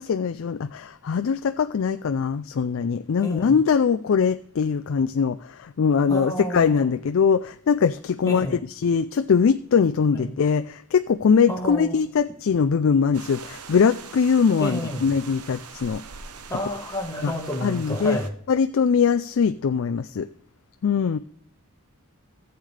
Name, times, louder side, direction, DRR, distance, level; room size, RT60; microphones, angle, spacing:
voice 1, 0.0-16.0 17.2-17.3 17.6-18.2 18.5-20.3 20.8-21.2, left 6 dB, 60° left, 9 dB, 0.4 m, -22 dB
voice 2, 3.2-3.6 6.1-6.9 8.2-8.6 10.1-10.3 11.5-12.0 14.6-15.1 16.5-18.3, equal, 15° left, 1 dB, 1.5 m, -30 dB
sound 1, 13.1-18.3, right 5 dB, 85° right, 1.0 m, -42 dB
15.0 x 8.0 x 3.3 m, 0.63 s
head